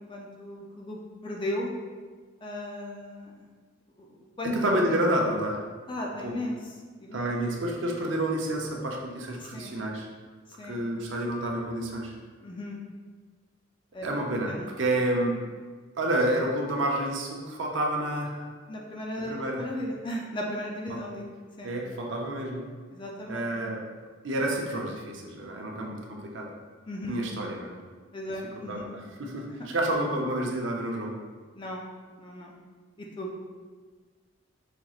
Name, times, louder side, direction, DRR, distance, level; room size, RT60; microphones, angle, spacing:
voice 1, 0.0-1.7 2.4-3.5 4.0-4.1 4.4-4.5 5.9-6.7 7.0-7.2 9.4-9.7 10.6-10.8 12.4-12.8 13.9-14.1 14.5-14.7 18.7-21.3 21.6-21.7 22.9-23.5 26.8-27.2 28.1-28.9 31.5-31.8 32.2-32.5 33.0-33.3, left 1 dB, 25° left, -1 dB, 0.4 m, -36 dB
voice 2, 4.6-5.6 6.2-6.3 7.1-10.1 10.7-12.1 14.0-15.4 16.0-18.5 19.3-19.7 21.6-22.6 23.3-23.8 24.2-26.5 27.1-27.7 28.7-31.1, right 1 dB, 65° right, 0 dB, 0.6 m, -29 dB
4.9 x 3.0 x 2.4 m, 1.5 s
head